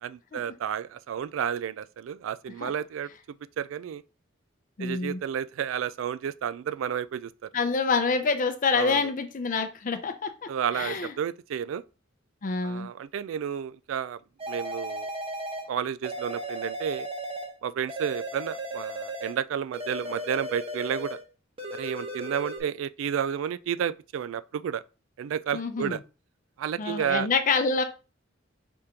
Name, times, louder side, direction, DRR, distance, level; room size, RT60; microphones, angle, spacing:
voice 1, 0.0-3.1 3.6-4.0 4.8-7.5 8.7-9.1 10.5-11.8 12.6-14.2 14.5-15.1 15.7-17.1 17.6-21.2 21.7-24.8 25.2-26.0 26.6-27.3, right 8 dB, 85° right, 0.3 m, -31 dB
voice 2, 4.8-5.2 7.5-10.5 10.7-11.1 12.4-12.9 25.5-26.0 26.8-27.8, left 4 dB, 45° left, 0.5 m, -27 dB
sound 1, 14.4-15.7 16.0-17.6 17.9-19.4 19.7-21.2 21.6-22.6, right 1 dB, 30° right, 0.9 m, -35 dB
5.0 x 3.5 x 2.8 m
head